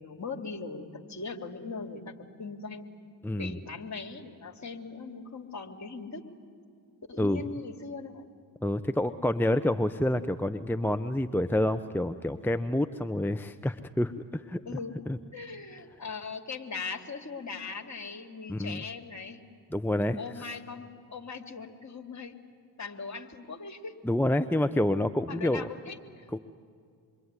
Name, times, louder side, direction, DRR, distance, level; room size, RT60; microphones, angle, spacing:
voice 1, 0.0-2.9 3.3-6.3 7.1-8.3 14.6-14.9 15.3-19.4 20.2-22.4 22.8-24.0 25.3-26.3, left 4 dB, 35° left, 5 dB, 2.8 m, -40 dB
voice 2, 8.6-14.6 15.1-15.2 18.5-18.8 19.7-20.2 24.0-25.7 26.3-26.4, left 1 dB, 5° left, 10 dB, 0.9 m, -28 dB
27.0 x 22.5 x 9.8 m, 2.3 s
hypercardioid pair, 45°, 47 cm